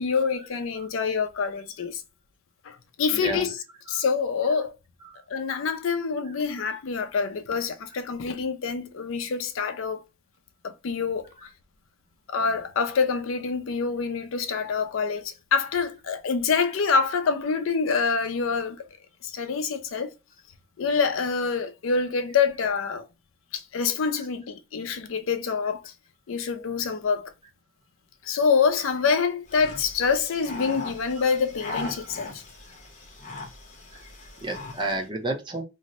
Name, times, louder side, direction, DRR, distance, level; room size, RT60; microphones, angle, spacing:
voice 1, 0.0-2.0 2.6-3.6 3.9-4.8 5.3-10.0 10.6-11.3 12.3-18.9 19.2-20.1 20.8-23.1 23.5-25.9 26.3-27.3 28.2-32.4, left 5 dB, 80° left, 0.4 m, -26 dB
voice 2, 3.1-3.5 3.9-4.0 5.0-5.2 31.9-32.1 33.9-34.0 34.4-35.6, right 2 dB, 25° right, 0.6 m, -31 dB
sound 1, 29.5-35.0, left 3 dB, 35° left, 0.8 m, -39 dB
2.6 x 2.1 x 4.0 m
head